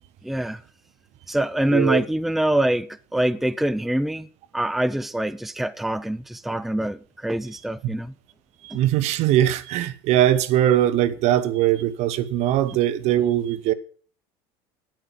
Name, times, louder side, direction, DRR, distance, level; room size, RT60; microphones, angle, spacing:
voice 1, 0.2-0.6 1.3-4.3 4.5-8.1 8.7-8.8, right 1 dB, ahead, 0.6 m, -24 dB
voice 2, 1.7-2.0 8.6-13.7, right 12 dB, 60° right, 1.1 m, -21 dB
9.8 x 9.0 x 7.5 m
hypercardioid pair, 90°, 13 cm